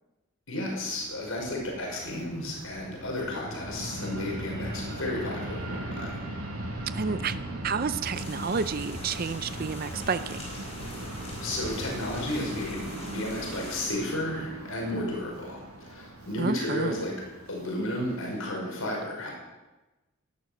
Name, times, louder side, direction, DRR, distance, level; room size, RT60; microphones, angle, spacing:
voice 1, 0.5-6.1 11.4-17.2 17.5-19.3, left 1 dB, 75° left, -1 dB, 5.6 m, -33 dB
Fixed-wing aircraft airplane, 0.5-18.4, right 1 dB, 90° right, 6.3 m, -39 dB
voice 2, 6.9-7.4 7.6-10.4 16.4-17.0, right 5 dB, 40° right, 13 dB, 0.5 m, -30 dB
sound 1, 8.1-13.8, left 1 dB, 30° left, 5.2 m, -44 dB
18.5 x 12.0 x 6.5 m, 1.1 s
head